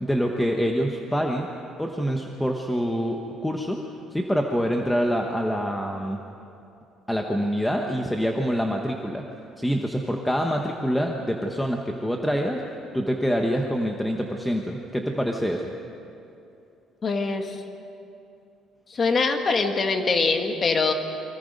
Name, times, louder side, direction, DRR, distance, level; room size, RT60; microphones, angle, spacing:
voice 1, 0.0-1.5 1.8-3.8 4.1-6.2 7.1-9.2 9.6-12.6 12.9-15.7, equal, 5° left, 1 dB, 1.1 m, -26 dB
voice 2, 17.0-17.6 18.9-20.9, left 4 dB, 25° left, 5 dB, 1.7 m, -23 dB
29.5 x 24.0 x 5.3 m, 2.7 s
cardioid pair, 175°, 0 cm